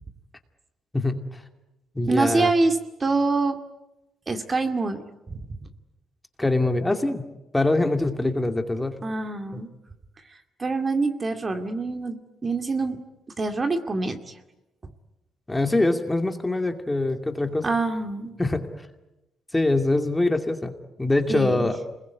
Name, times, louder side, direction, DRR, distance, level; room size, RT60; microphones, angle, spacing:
voice 1, 0.9-1.4 1.9-2.5 6.4-7.3 7.5-9.0 9.5-9.6 15.5-17.7 18.4-18.7 19.5-20.7 21.0-21.7, left 2 dB, 15° left, 6 dB, 2.5 m, -23 dB
voice 2, 2.1-3.6 4.3-5.0 5.3-5.4 9.0-9.7 10.6-13.0 13.4-14.3 17.6-18.3 21.3-21.7, right 3 dB, 30° right, 6 dB, 2.2 m, -25 dB
27.5 x 21.5 x 9.6 m, 0.99 s
cardioid pair, 90°, 0 cm